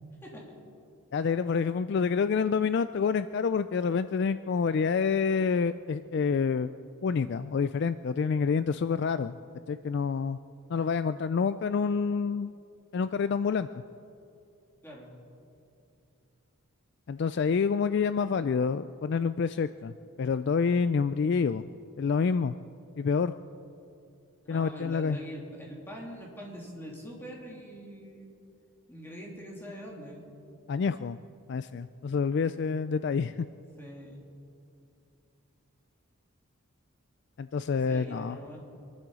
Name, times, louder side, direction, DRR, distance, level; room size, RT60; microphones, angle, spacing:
voice 1, 0.2-0.6 14.8-15.1 24.4-28.3 28.9-30.2 33.8-34.2 37.8-38.6, equal, 10° left, -3 dB, 3.0 m, -43 dB
voice 2, 1.1-6.7 7.0-9.4 9.7-10.4 10.7-12.5 12.9-13.7 17.1-19.9 20.2-21.6 22.0-22.6 23.0-23.3 24.5-25.2 30.7-31.2 31.5-33.5 37.4-38.4, left 5 dB, 50° left, 13 dB, 0.3 m, -27 dB
25.5 x 11.5 x 4.9 m, 2.6 s
head